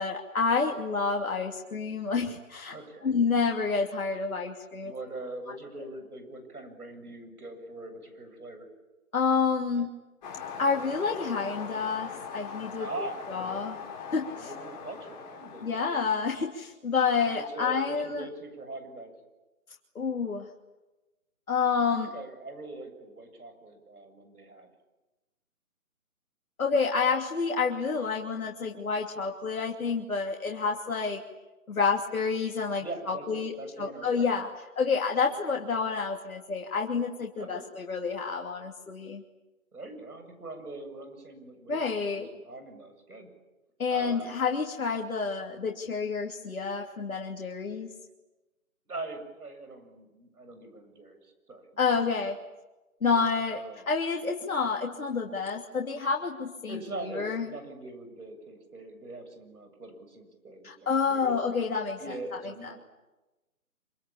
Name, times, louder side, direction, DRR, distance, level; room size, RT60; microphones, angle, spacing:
voice 1, 0.0-2.7 3.0-4.9 9.1-9.9 10.6-13.8 14.1-14.5 15.6-18.2 19.9-20.5 21.5-22.1 26.6-31.2 31.7-33.5 33.8-34.5 34.8-39.2 41.7-42.3 43.8-47.9 51.8-52.4 53.0-53.6 53.9-57.5 60.6-62.0, left 5 dB, 70° left, 0 dB, 2.9 m, -29 dB
voice 2, 2.7-3.1 4.8-8.7 12.8-13.6 14.4-15.9 17.5-19.1 22.1-24.7 32.8-34.5 35.3-35.4 37.4-37.7 39.7-43.3 43.9-44.3 48.9-51.8 52.2-52.3 53.1-53.8 56.7-61.4 62.0-62.8, right 2 dB, 85° right, 7 dB, 7.8 m, -42 dB
sound 1, 10.2-16.4, left 6 dB, 30° left, 3.9 m, -41 dB
26.5 x 25.5 x 8.8 m, 1.1 s
hypercardioid pair, 160°, 44 cm